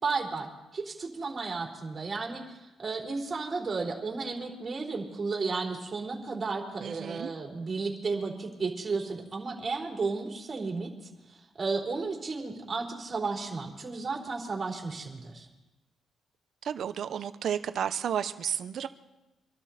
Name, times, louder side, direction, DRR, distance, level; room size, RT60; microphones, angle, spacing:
voice 1, 0.0-2.4 2.8-10.9 11.5-15.5, right 4 dB, 35° right, 0 dB, 4.3 m, -33 dB
voice 2, 6.8-7.3 16.6-18.9, right 8 dB, 65° right, 12 dB, 1.0 m, -32 dB
26.0 x 12.0 x 4.4 m, 1.0 s
cardioid pair, 90°, 0 cm